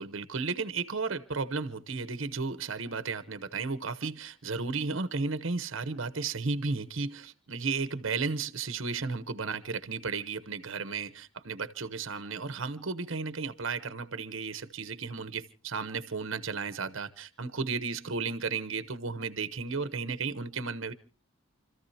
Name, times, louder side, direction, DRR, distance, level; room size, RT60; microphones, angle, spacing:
voice 1, 0.0-20.9, right 4 dB, 65° right, 0.9 m, -34 dB
29.5 x 14.0 x 2.8 m
head